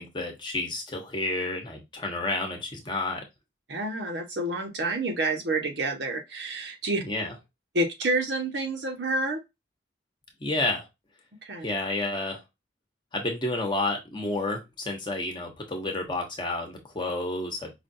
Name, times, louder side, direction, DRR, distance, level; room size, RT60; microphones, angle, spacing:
voice 1, 0.0-3.2 7.0-7.3 10.4-10.8 11.6-12.4 13.1-17.7, left 2 dB, 25° left, 2 dB, 0.9 m, -30 dB
voice 2, 3.7-7.0 7.7-9.4 11.4-11.6, right 2 dB, 70° right, 2 dB, 1.0 m, -28 dB
5.1 x 2.5 x 2.6 m, 0.21 s
head